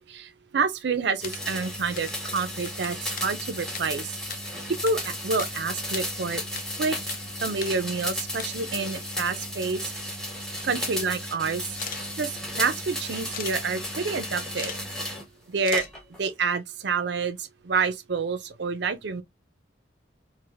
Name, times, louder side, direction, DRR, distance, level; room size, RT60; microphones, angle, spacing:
voice 1, 0.0-4.1 4.8-6.4 6.8-7.0 7.4-9.9 10.6-11.8 12.2-14.7 15.5-15.9 16.2-19.2, right 4 dB, 60° right, 0.5 m, -28 dB
sound 1, 1.0-2.2 2.5-5.6 5.8-6.6 6.9-7.2 7.5-7.7 8.1-8.5 9.5-9.6 9.9-10.6 11.7-12.0 13.3-13.6 14.3-14.8 15.1-15.2 15.6-15.9, left 8 dB, 45° left, 0.5 m, -38 dB
sound 2, 1.2-15.3 15.7-16.3, left 1 dB, 5° left, 0.7 m, -34 dB
3.2 x 2.5 x 2.4 m
head